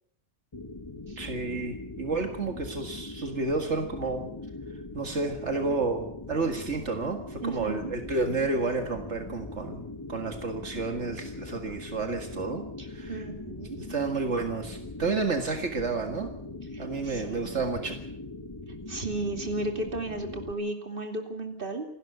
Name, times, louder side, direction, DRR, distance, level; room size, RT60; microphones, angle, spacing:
sound 1, 0.5-20.5, left 2 dB, 25° left, 1.1 m, -41 dB
voice 1, 1.2-4.3 4.9-9.8 10.1-12.6 12.9-13.2 13.8-16.3 16.8-18.0, right 3 dB, 80° right, 4 dB, 2.2 m, -30 dB
voice 2, 7.4-7.9 12.8-13.8 16.7-17.6 18.9-21.8, right 2 dB, 50° right, 4 dB, 2.9 m, -34 dB
27.5 x 12.5 x 8.1 m, 0.72 s
omnidirectional pair, 1.2 m